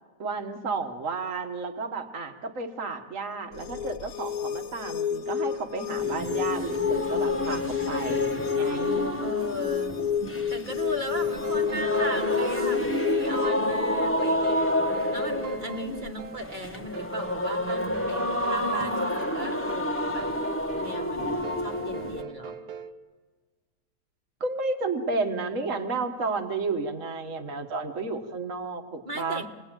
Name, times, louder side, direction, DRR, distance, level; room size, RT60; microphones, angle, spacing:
voice 1, 0.2-9.1 24.4-29.5, right 3 dB, 55° right, 6 dB, 1.9 m, -32 dB
sound 1, 3.5-13.5, left 8 dB, 70° left, 1.4 m, -30 dB
sound 2, 6.0-22.2, left 1 dB, 10° left, 1.0 m, -29 dB
voice 2, 9.2-10.0 10.5-14.8 15.1-20.3 20.8-22.6 29.1-29.5, equal, 30° right, 3 dB, 1.7 m, -36 dB
sound 3, 11.2-22.9, right 6 dB, 75° right, 1.5 m, -42 dB
27.0 x 19.5 x 9.0 m, 1.5 s
omnidirectional pair, 1.7 m